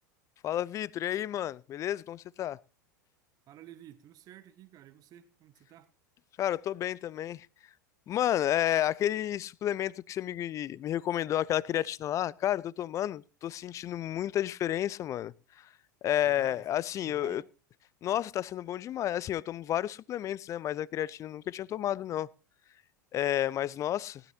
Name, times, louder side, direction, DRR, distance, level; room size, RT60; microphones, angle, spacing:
voice 1, 0.4-2.6 6.4-7.5 8.1-15.7 16.0-17.4 18.0-22.3 23.1-24.2, left 12 dB, 30° left, 0.5 m, -31 dB
voice 2, 3.5-5.9 16.2-16.6 17.0-17.4, right 11 dB, 40° right, 1.4 m, -52 dB
19.0 x 13.0 x 2.8 m
figure-of-eight pair, 85°, 10 cm